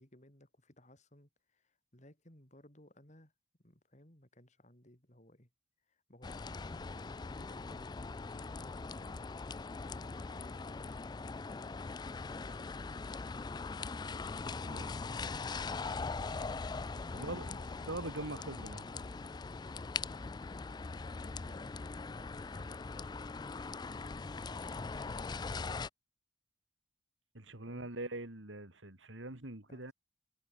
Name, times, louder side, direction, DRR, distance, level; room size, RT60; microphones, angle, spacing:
voice 1, 0.0-3.3 3.6-5.5 5.9-9.2 9.8-11.1 17.1-17.9 19.6-19.9 20.9-23.6 23.9-25.2 27.7-27.9 29.7-29.9, left 1 dB, 40° left, 5.3 m, -60 dB
sound 1, 6.2-25.9, left 4 dB, 20° left, 0.3 m, -41 dB
voice 2, 17.0-17.5 17.9-18.9 27.3-29.9, right 2 dB, 85° right, 3.2 m, -43 dB
head